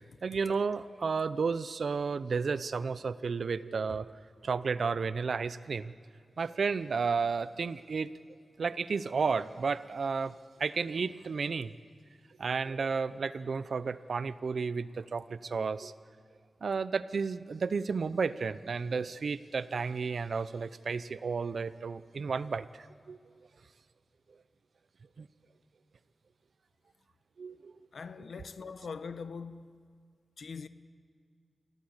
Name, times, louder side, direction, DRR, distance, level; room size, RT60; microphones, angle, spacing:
voice 1, 0.2-4.1 4.4-5.9 6.4-8.1 8.6-10.3 10.6-11.7 12.4-15.9 16.6-23.2 25.2-25.3 27.4-27.7, right 5 dB, 70° right, 0.7 m, -32 dB
voice 2, 27.9-29.8 30.4-30.7, left 5 dB, 75° left, 0.9 m, -42 dB
27.5 x 16.0 x 8.1 m
wide cardioid pair, 120°, 0 cm